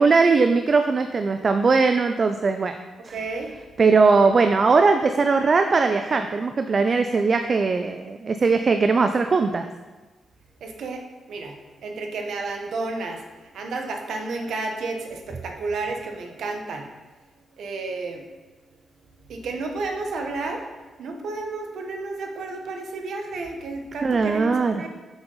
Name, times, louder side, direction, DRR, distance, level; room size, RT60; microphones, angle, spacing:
voice 1, 0.0-2.8 3.0-3.2 3.8-9.7 24.0-24.8, right 4 dB, 40° right, 7 dB, 0.3 m, -20 dB
voice 2, 3.1-3.5 10.6-13.2 13.5-16.9 17.6-18.3 19.3-20.6 21.0-24.9, right 3 dB, 80° right, 3 dB, 1.0 m, -31 dB
7.0 x 5.4 x 4.0 m, 1.2 s
cardioid pair, 100°, 0 cm